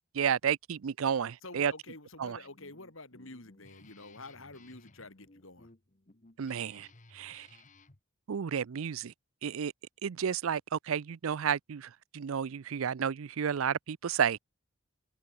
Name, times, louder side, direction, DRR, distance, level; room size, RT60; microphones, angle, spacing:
voice 1, 0.1-1.7 2.2-2.4 6.4-6.9 7.1-7.5 8.3-9.1 9.4-9.7 10.0-14.4, right 7 dB, 70° right, 0.5 m, -31 dB
voice 2, 1.4-5.7, left 2 dB, 65° left, 4.5 m, -48 dB
Guitar, 2.2-8.0, left 2 dB, 35° left, 1.4 m, -59 dB
head